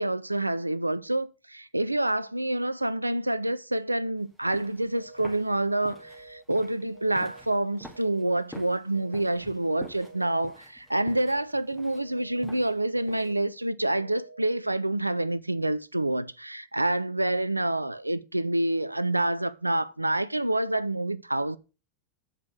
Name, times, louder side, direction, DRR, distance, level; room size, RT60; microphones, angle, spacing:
voice 1, 0.0-21.6, right 1 dB, 85° right, 0.5 m, -27 dB
sound 1, 4.2-13.5, left 1 dB, 5° left, 2.4 m, -49 dB
sound 2, 4.9-5.4 5.9-6.4 6.9-7.4 7.9-8.4 8.9-9.4 9.9-10.4 10.9-11.4 11.9-12.4 12.9-13.4 13.9-14.4, right 3 dB, 70° right, 1.0 m, -49 dB
8.2 x 5.1 x 6.0 m
figure-of-eight pair, 90°, 0 cm